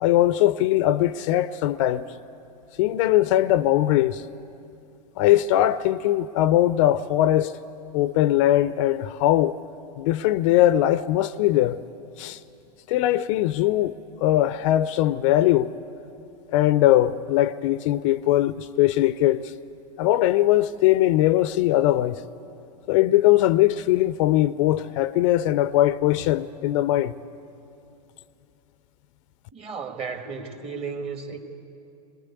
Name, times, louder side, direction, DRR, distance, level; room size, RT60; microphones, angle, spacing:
voice 1, 0.0-2.0 2.8-4.2 5.2-7.5 7.9-9.5 10.0-11.8 12.2-12.4 12.9-13.9 14.2-15.7 16.5-19.4 20.0-22.2 22.9-27.1, left 14 dB, 50° left, 0.6 m, -20 dB
voice 2, 29.5-31.4, right 5 dB, 30° right, 2.0 m, -34 dB
23.0 x 19.5 x 8.3 m
hypercardioid pair, 100°, 20 cm